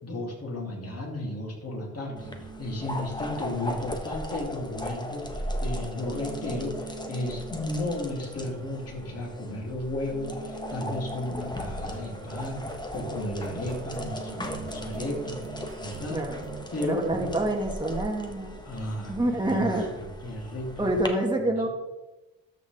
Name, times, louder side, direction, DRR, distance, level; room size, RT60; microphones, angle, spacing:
voice 1, 0.0-12.6 12.9-16.2 16.7-17.3 18.6-19.1 19.5-19.6 19.9-20.9, left 1 dB, 40° left, -2 dB, 3.4 m, -34 dB
sound 1, 2.1-16.7, right 6 dB, 35° right, 1.2 m, -46 dB
sound 2, 2.2-21.1, left 1 dB, 10° left, 1.3 m, -37 dB
voice 2, 16.1-16.4 16.8-18.5 19.1-19.9 20.8-21.7, right 1 dB, 10° right, 1 dB, 1.7 m, -27 dB
12.5 x 6.2 x 3.6 m, 1.1 s
cardioid pair, 85°, 36 cm